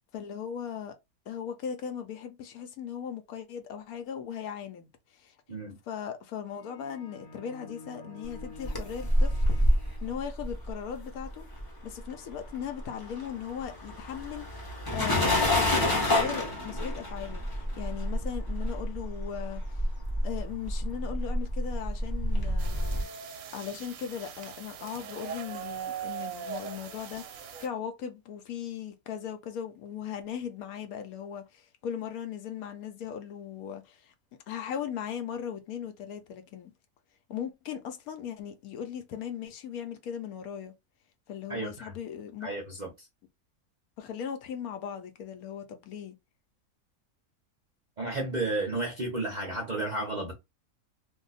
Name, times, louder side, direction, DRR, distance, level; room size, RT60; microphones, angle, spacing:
voice 1, 0.1-1.0 1.3-5.4 5.9-9.5 10.0-11.4 11.8-19.9 20.2-23.0 23.5-34.1 34.5-36.7 37.3-40.7 41.3-42.6 44.0-46.1, left 8 dB, 75° left, 1.0 m, -38 dB
sound 1, 6.5-10.4, left 3 dB, 90° left, 1.3 m, -49 dB
sound 2, 8.4-12.0 12.3-23.0, left 1 dB, 25° left, 0.5 m, -28 dB
sound 3, 22.6-27.7, right 8 dB, 70° right, 0.9 m, -40 dB
voice 2, 41.5-41.9 42.4-42.9 48.0-50.3, right 2 dB, 40° right, 0.6 m, -32 dB
2.7 x 2.2 x 3.9 m
omnidirectional pair, 1.7 m